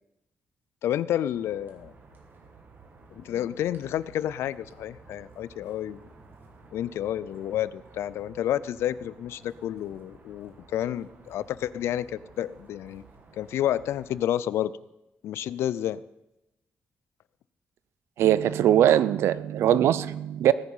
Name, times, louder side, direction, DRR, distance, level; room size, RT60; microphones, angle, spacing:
voice 1, 0.8-1.9 3.1-6.1 6.7-13.0 13.3-14.7 15.2-16.0, left 11 dB, 90° left, 18 dB, 0.4 m, -30 dB
sound 1, 1.3-14.2, right 4 dB, 55° right, 2.3 m, -53 dB
voice 2, 18.2-20.5, right 11 dB, 85° right, 17 dB, 0.5 m, -21 dB
18.0 x 10.0 x 5.6 m, 0.93 s
cardioid pair, 95°, 4 cm